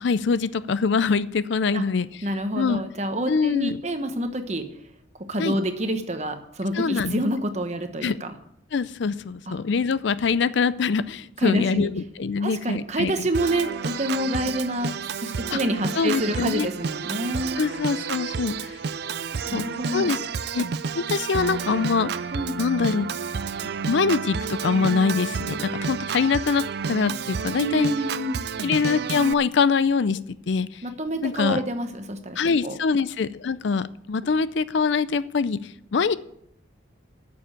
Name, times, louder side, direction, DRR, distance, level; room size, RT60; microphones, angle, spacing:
voice 1, 0.0-2.1 2.6-2.8 3.3-3.8 5.4-5.6 6.7-7.2 8.0-8.2 8.7-13.3 15.5-15.6 15.9-16.7 17.6-18.7 19.3-19.7 19.9-20.2 20.5-20.6 20.9-22.1 22.6-23.1 23.9-26.6 26.9-27.9 28.6-30.2 30.5-30.8 31.2-31.6 32.4-36.2, left 5 dB, 65° left, 16 dB, 0.4 m, -24 dB
voice 2, 2.2-4.7 5.3-8.3 9.5-9.6 11.4-11.9 12.4-17.6 19.5-20.1 22.3-22.6 27.6-28.4 30.8-32.4 32.6-32.8, right 1 dB, 35° right, 7 dB, 1.1 m, -27 dB
Organ, 13.3-29.3, right 6 dB, 55° right, 0.4 m, -30 dB
9.6 x 7.0 x 8.8 m, 0.74 s
head